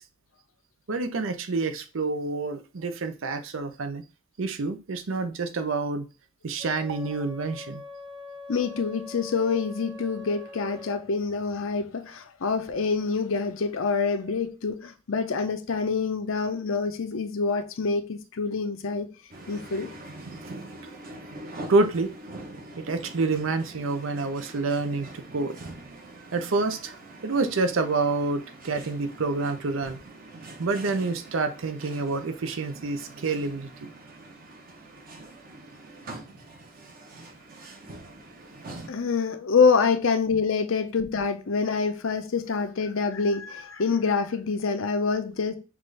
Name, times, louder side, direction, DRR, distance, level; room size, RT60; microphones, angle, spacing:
voice 1, 0.9-4.0 4.4-6.1 6.4-7.8 14.2-14.3 21.7-22.1 22.8-25.6 26.3-30.0 30.6-33.9, right 3 dB, 70° right, 0.6 m, -28 dB
Wind instrument woodwind instrument, 6.6-11.1, left 3 dB, 20° right, 0.6 m, -43 dB
voice 2, 8.5-19.1 19.5-19.9 38.9-45.6, left 5 dB, 70° left, 0.6 m, -26 dB
sound 1, 19.3-38.9, right 2 dB, 45° right, 0.9 m, -44 dB
5.8 x 2.5 x 3.2 m
head